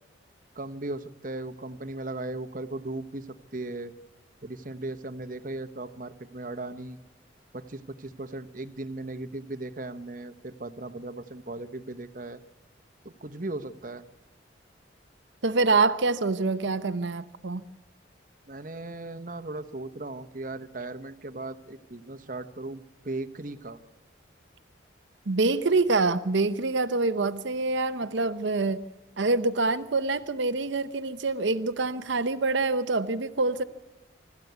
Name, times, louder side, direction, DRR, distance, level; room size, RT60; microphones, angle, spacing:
voice 1, 0.5-3.9 4.4-7.0 7.5-12.4 13.0-14.0 18.5-23.8, right 2 dB, 45° right, 11 dB, 1.1 m, -37 dB
voice 2, 15.4-17.6 25.3-28.8 29.2-33.6, right 3 dB, 75° right, 11 dB, 0.8 m, -26 dB
25.5 x 13.5 x 8.1 m, 1.1 s
head